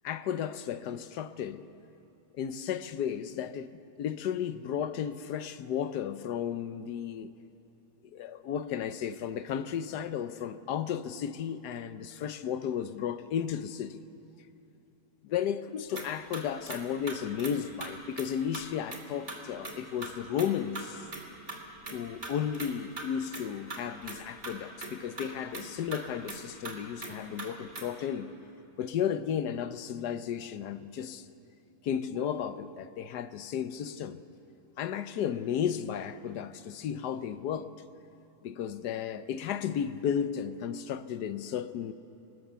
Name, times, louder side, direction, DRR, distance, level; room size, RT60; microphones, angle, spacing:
voice 1, 0.0-1.7 2.4-3.7 4.0-7.3 8.1-14.0 15.2-21.1 21.9-28.3 28.8-31.2 31.8-34.2 34.8-37.7 38.4-41.9, left 8 dB, 80° left, 1.3 m, -34 dB
sound 1, 15.9-16.1 16.3-16.8 17.1-17.5 17.8-17.9 18.2-18.3 18.5-18.6 18.9-19.4 19.6-19.7 20.0-20.1 20.4-20.5 20.7-20.9 21.1-21.2 21.5-21.6 21.9-22.7 23.0-23.1 23.3-23.4 23.7-24.5 24.8-24.9 25.2-25.3 25.5-25.6 25.9-26.4 26.6-26.7 27.0-27.8, right 3 dB, 45° right, 3.0 m, -39 dB
29.0 x 18.5 x 6.9 m
omnidirectional pair, 1.7 m